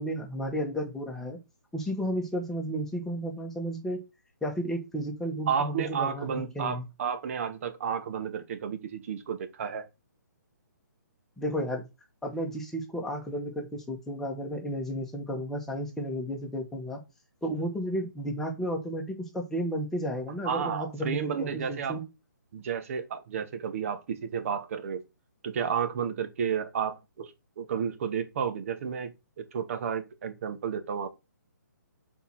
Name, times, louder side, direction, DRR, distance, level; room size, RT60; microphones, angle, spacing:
voice 1, 0.0-1.4 1.7-4.0 4.4-6.8 11.4-11.9 12.2-17.0 17.4-22.0, equal, 5° left, 1.6 m, -33 dB
voice 2, 5.5-9.9 20.4-22.0 22.5-25.0 25.4-27.3 27.6-31.1, right 7 dB, 45° right, 1.5 m, -32 dB
5.6 x 4.4 x 6.0 m
figure-of-eight pair, 140°, 10 cm